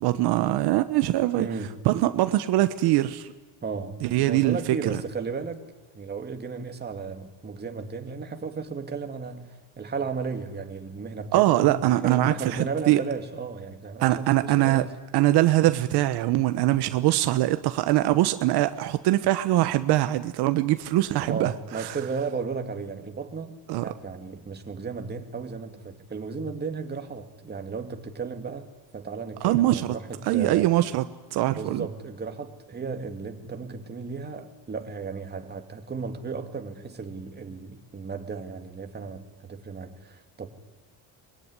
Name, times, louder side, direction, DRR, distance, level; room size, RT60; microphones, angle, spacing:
voice 1, 0.0-1.5 1.8-3.3 4.0-5.0 11.3-13.0 14.0-14.8 15.1-22.0 23.7-23.8 29.4-29.9 30.3-31.0 31.3-31.9, right 15 dB, 75° right, 10 dB, 1.2 m, -22 dB
voice 2, 1.3-1.8 3.6-4.0 4.3-5.6 5.9-15.0 21.2-28.7 28.9-30.7 31.5-40.5, right 5 dB, 25° right, 5 dB, 2.5 m, -34 dB
24.0 x 21.5 x 9.8 m, 1.2 s
cardioid pair, 130°, 40 cm